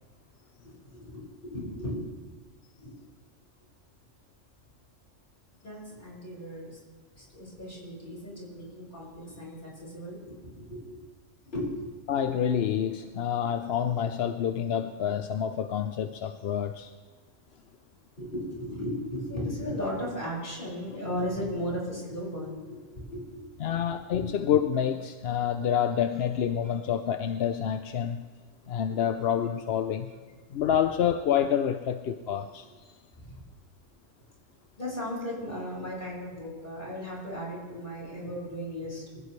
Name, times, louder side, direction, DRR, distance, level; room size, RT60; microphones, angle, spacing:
voice 1, 0.6-2.3 2.8-2.9 5.6-6.8 7.2-11.0 11.5-11.9 18.2-23.8 24.1-24.2 33.1-33.3 34.8-39.2, equal, 45° left, -4 dB, 6.0 m, -36 dB
voice 2, 12.1-16.9 23.6-28.3 28.7-30.1 30.5-32.9, left 9 dB, 60° left, 8 dB, 0.8 m, -28 dB
24.5 x 16.0 x 3.2 m, 1.4 s
omnidirectional pair, 1.3 m